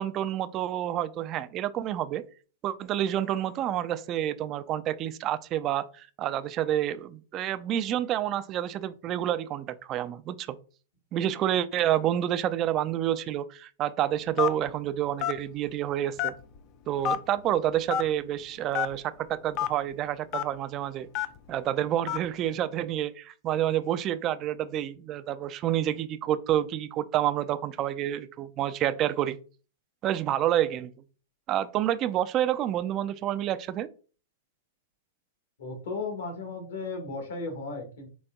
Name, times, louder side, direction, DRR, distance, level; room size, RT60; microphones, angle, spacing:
voice 1, 0.0-2.2 2.6-10.6 11.1-16.3 16.9-21.1 21.5-29.4 30.0-30.9 31.5-33.9, right 11 dB, 35° right, 0.3 m, -28 dB
Telephone, 14.4-14.7 15.2-15.4 16.2-16.6 17.0-17.2 17.9-18.1 18.7-18.9 19.5-19.7 20.3-20.4 21.1-21.4 22.1-22.3, left 10 dB, 40° left, 0.4 m, -27 dB
voice 2, 35.6-38.1, left 3 dB, 70° left, 1.3 m, -35 dB
4.1 x 3.4 x 2.3 m
hypercardioid pair, 110°, 0 cm